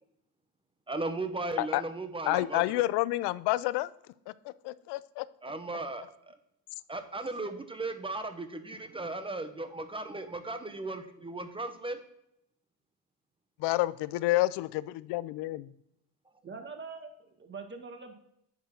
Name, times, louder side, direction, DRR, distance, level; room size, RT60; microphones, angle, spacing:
voice 1, 0.9-2.8 5.4-6.3 6.9-12.0, right 2 dB, 15° right, 8 dB, 1.0 m, -36 dB
voice 2, 2.3-3.9 4.3-4.4 4.6-5.2 13.6-15.7, left 18 dB, 80° left, 18 dB, 0.6 m, -29 dB
voice 3, 16.4-18.1, right 4 dB, 30° right, 5 dB, 1.7 m, -43 dB
9.6 x 3.8 x 5.9 m, 0.76 s
cardioid pair, 100°, 40 cm